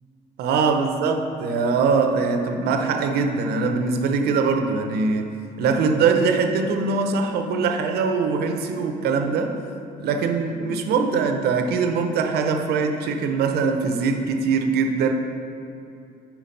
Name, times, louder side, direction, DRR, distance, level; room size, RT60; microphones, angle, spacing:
voice 1, 0.4-5.3 5.6-9.6 10.0-15.1, right 4 dB, 70° right, 5 dB, 0.6 m, -22 dB
5.8 x 4.5 x 5.2 m, 2.7 s
cardioid pair, 110°, 17 cm